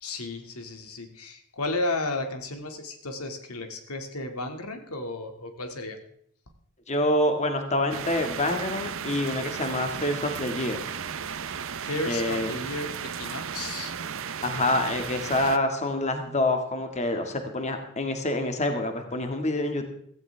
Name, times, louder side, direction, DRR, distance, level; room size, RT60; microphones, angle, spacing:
voice 1, 0.0-6.0 11.5-13.9, left 2 dB, 85° left, 5 dB, 2.2 m, -33 dB
voice 2, 6.9-10.8 12.1-12.5 14.4-19.9, left 1 dB, 30° left, 5 dB, 1.9 m, -27 dB
sound 1, 7.9-15.6, right 7 dB, 65° right, 0.8 m, -35 dB
17.0 x 15.0 x 3.4 m, 0.66 s
head